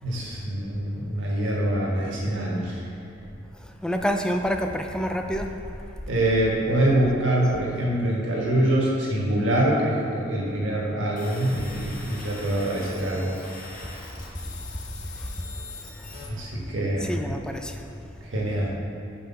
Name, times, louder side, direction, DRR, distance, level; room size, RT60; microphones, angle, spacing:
voice 1, 0.0-2.8 6.1-13.3 16.3-17.2 18.3-18.8, right 1 dB, 75° right, -3 dB, 1.4 m, -24 dB
voice 2, 3.8-5.5 14.7-14.8 15.2-15.3 15.6-15.7 16.0-16.1 17.0-17.8, equal, 5° left, 4 dB, 0.3 m, -28 dB
sound 1, 11.2-16.3, left 3 dB, 40° left, 1.0 m, -42 dB
5.7 x 5.0 x 5.6 m, 2.8 s
head